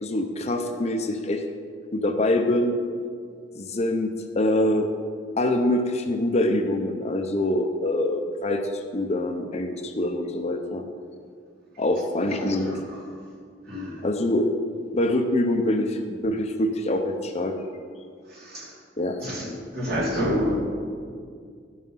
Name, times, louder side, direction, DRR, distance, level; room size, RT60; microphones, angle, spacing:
voice 1, 0.0-1.4 1.9-2.7 3.5-4.1 4.3-4.9 5.4-10.8 11.8-12.8 14.0-14.5 14.9-17.5 19.0-19.2, left 1 dB, 35° left, 5 dB, 0.7 m, -24 dB
voice 2, 12.3-13.1 13.7-14.0 18.3-18.8 19.2-20.6, equal, 55° right, -5 dB, 2.7 m, -29 dB
11.5 x 5.6 x 5.6 m, 2.2 s
head